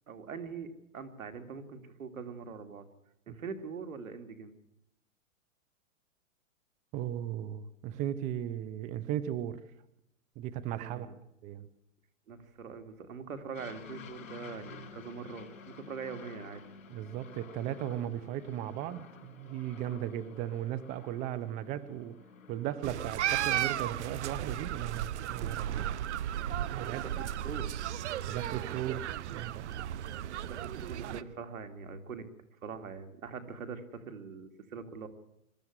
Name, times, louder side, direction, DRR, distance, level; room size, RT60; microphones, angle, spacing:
voice 1, 0.1-0.7 0.9-2.8 3.3-4.5 10.7-11.2 12.3-16.6 26.9-27.7 30.4-32.3 32.6-35.1, right 5 dB, 90° right, 7 dB, 3.0 m, -43 dB
voice 2, 6.9-9.6 10.4-11.1 11.4-11.7 16.9-22.1 22.5-25.9 26.7-27.0 28.3-29.9, right 11 dB, 20° right, 16 dB, 0.7 m, -37 dB
Aircraft, 13.5-23.1, left 6 dB, 75° left, 5.3 m, -51 dB
sound 1, 22.8-31.2, right 11 dB, 60° right, 1.0 m, -35 dB
23.0 x 13.5 x 9.7 m, 0.85 s
hypercardioid pair, 150°, 40 cm